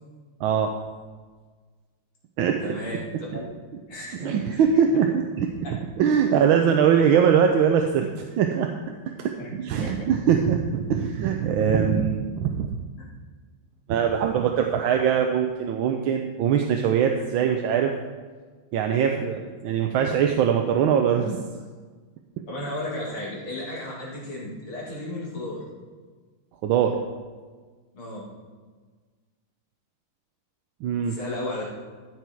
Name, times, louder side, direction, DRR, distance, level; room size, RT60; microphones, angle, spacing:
voice 1, 0.4-0.7 2.4-2.6 4.2-8.7 9.2-12.8 13.9-17.9 18.7-21.4 26.6-27.0 30.8-31.2, right 7 dB, 75° right, 4 dB, 1.4 m, -22 dB
voice 2, 2.6-3.1 3.3-3.4 3.9-4.8 9.4-9.5 9.8-10.1 22.5-25.6 27.9-28.2 31.0-31.6, left 1 dB, 90° left, -5 dB, 3.7 m, -34 dB
14.0 x 6.3 x 4.6 m, 1.4 s
omnidirectional pair, 2.4 m